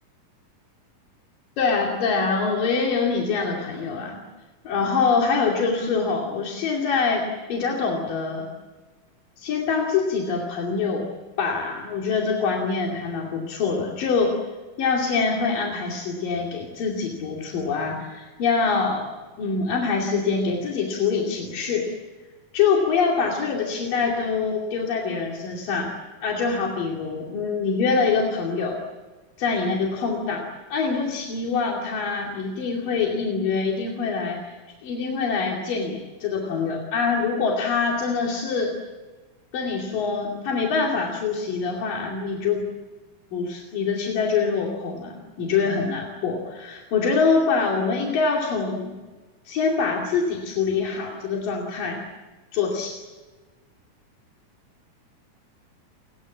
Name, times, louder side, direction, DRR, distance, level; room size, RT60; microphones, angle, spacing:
voice 1, 1.6-4.2 4.6-8.5 9.4-11.1 11.4-14.4 14.8-21.9 22.5-25.9 26.2-28.8 29.4-34.5 34.8-38.7 39.5-42.7 43.3-48.9 49.5-52.0 52.5-53.0, left 5 dB, 85° left, -1 dB, 4.3 m, -24 dB
30.0 x 21.5 x 7.3 m, 1.3 s
omnidirectional pair, 3.8 m